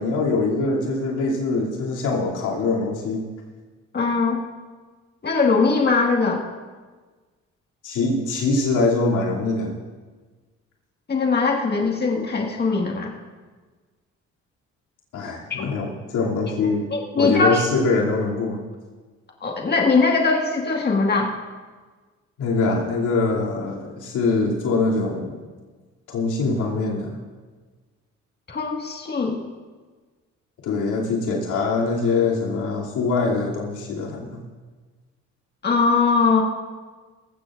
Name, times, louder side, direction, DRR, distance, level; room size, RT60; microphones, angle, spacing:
voice 1, 0.0-3.3 7.8-9.8 15.1-16.9 17.2-18.6 22.4-25.4 26.1-27.2 30.6-34.4, left 3 dB, 90° left, -4 dB, 2.8 m, -23 dB
voice 2, 3.9-4.4 5.2-6.4 11.1-13.1 15.6-15.7 16.9-17.6 19.4-21.3 28.5-29.4 35.6-36.4, left 4 dB, 35° left, 0 dB, 1.8 m, -21 dB
20.0 x 15.0 x 2.5 m, 1.4 s
cardioid pair, 90°, 30 cm